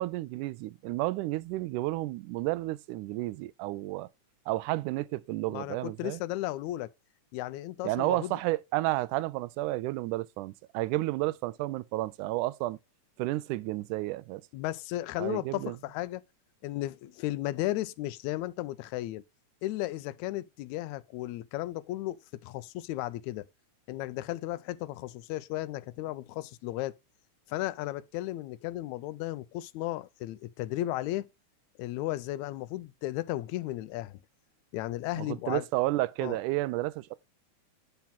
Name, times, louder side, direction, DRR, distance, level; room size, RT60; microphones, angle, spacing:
voice 1, 0.0-4.1 4.5-6.2 7.8-12.8 13.2-14.4 15.2-15.8 35.2-37.1, right 18 dB, 85° right, 2.0 m, -31 dB
voice 2, 5.5-6.9 7.3-8.4 14.5-16.2 16.6-19.2 19.6-22.2 22.4-23.5 23.9-26.9 27.5-31.3 31.8-34.2 34.7-35.7 36.2-36.4, left 16 dB, 80° left, 1.8 m, -34 dB
10.5 x 4.3 x 3.6 m
omnidirectional pair, 3.6 m